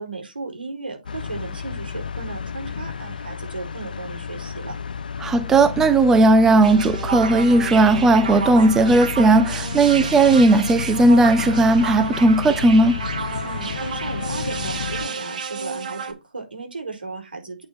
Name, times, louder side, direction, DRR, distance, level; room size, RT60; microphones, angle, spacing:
voice 1, 0.0-4.7 13.4-17.7, right 3 dB, 85° right, 4.6 m, -35 dB
sound 1, 1.1-15.1, left 6 dB, 65° left, 0.8 m, -31 dB
voice 2, 5.2-13.0, right 2 dB, 10° right, 0.4 m, -16 dB
sound 2, 6.6-16.1, right 5 dB, 55° right, 1.8 m, -31 dB
8.4 x 4.6 x 6.0 m
hypercardioid pair, 145°, 5 cm